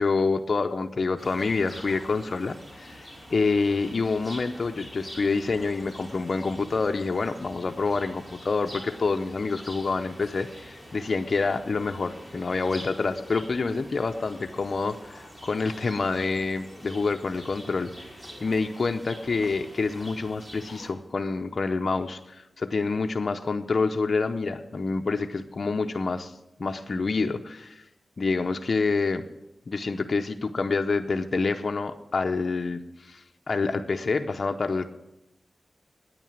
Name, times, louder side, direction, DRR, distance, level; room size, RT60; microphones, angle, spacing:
voice 1, 0.0-17.9 18.4-26.3 26.6-27.8 28.2-29.2 29.7-34.9, left 4 dB, 60° left, 5 dB, 0.7 m, -27 dB
sound 1, 1.2-20.9, equal, 15° right, 4.6 m, -45 dB
9.6 x 9.0 x 9.1 m, 0.92 s
wide cardioid pair, 70°, 0 cm